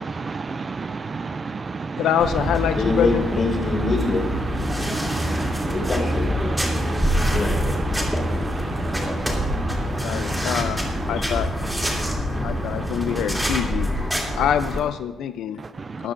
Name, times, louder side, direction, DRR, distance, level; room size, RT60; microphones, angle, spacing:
voice 1, 0.0-2.0 4.6-5.9 6.5-7.6 7.9-10.5 15.8-16.1, right 4 dB, 35° right, 13 dB, 0.4 m, -32 dB
voice 2, 2.0-3.2 9.7-11.5 12.4-13.9 14.4-15.6 16.0-16.1, left 10 dB, 90° left, 11 dB, 0.4 m, -25 dB
sound 1, 2.2-14.8, equal, 5° right, 2.8 m, -25 dB
voice 3, 2.7-4.3 5.6-6.3 7.3-7.8, left 2 dB, 35° left, -2 dB, 4.8 m, -24 dB
20.0 x 12.5 x 2.6 m, 1.2 s
cardioid pair, 115°, 0 cm